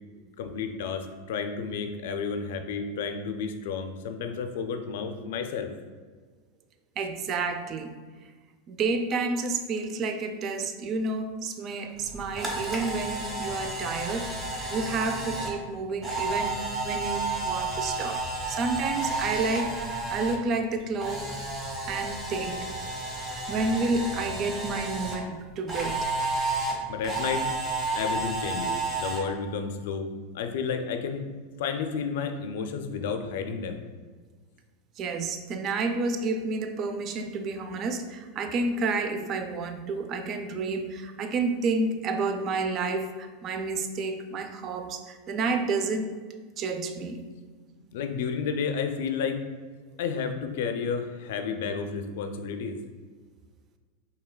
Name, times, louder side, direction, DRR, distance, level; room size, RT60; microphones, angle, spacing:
voice 1, 0.4-5.7 26.9-27.5 28.0-30.1 30.3-31.3 31.6-33.8 47.9-49.4 50.0-52.8, left 6 dB, 75° left, 6 dB, 0.4 m, -31 dB
voice 2, 7.0-7.9 8.7-14.4 14.7-19.7 20.1-21.4 21.9-22.7 23.5-26.1 35.0-46.2 46.6-47.2, right 3 dB, 40° right, 7 dB, 0.4 m, -30 dB
Camera, 12.0-20.4 20.7-25.2 25.7-29.2, right 2 dB, 20° right, 1.0 m, -31 dB
4.7 x 3.2 x 2.2 m, 1.5 s
hypercardioid pair, 110°, 0 cm